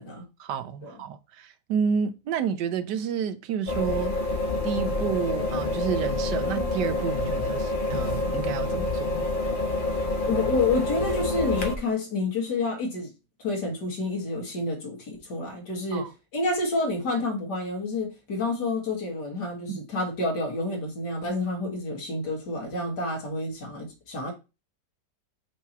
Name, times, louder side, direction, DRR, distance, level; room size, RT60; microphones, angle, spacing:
voice 1, 0.4-4.1 4.6-9.3 15.9-16.1 19.7-19.8, right 7 dB, 85° right, 1.3 m, -30 dB
sound 1, 3.7-11.8, left 2 dB, 40° left, 0.9 m, -27 dB
voice 2, 10.3-13.1 13.4-24.3, left 2 dB, 80° left, 2.5 m, -29 dB
6.0 x 3.0 x 5.5 m
omnidirectional pair, 1.8 m